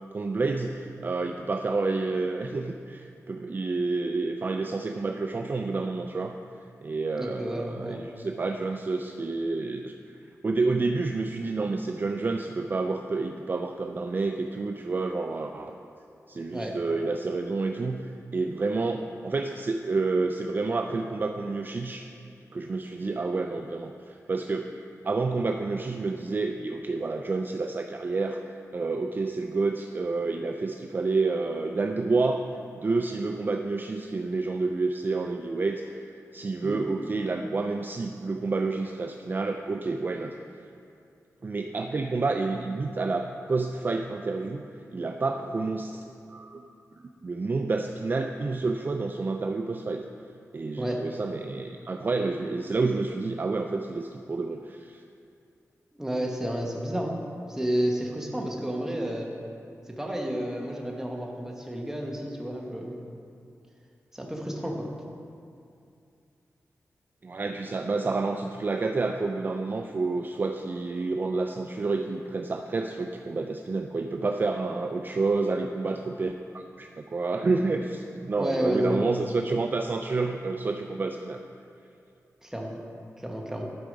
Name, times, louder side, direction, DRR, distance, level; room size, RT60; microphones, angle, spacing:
voice 1, 0.1-6.4 6.8-15.7 16.3-22.1 22.5-24.7 25.0-32.5 32.8-40.3 41.4-46.6 47.2-50.0 50.5-55.0 67.2-81.4, right 3 dB, 35° right, 4 dB, 0.3 m, -29 dB
voice 2, 7.2-8.0 16.5-16.8 36.6-36.8 50.8-51.0 56.0-57.2 57.5-59.3 59.9-63.0 64.1-64.9 78.4-79.0 82.4-82.8 83.2-83.7, right 1 dB, 10° right, -1 dB, 1.2 m, -31 dB
11.0 x 4.7 x 5.2 m, 2.5 s
wide cardioid pair, 80°, 5 cm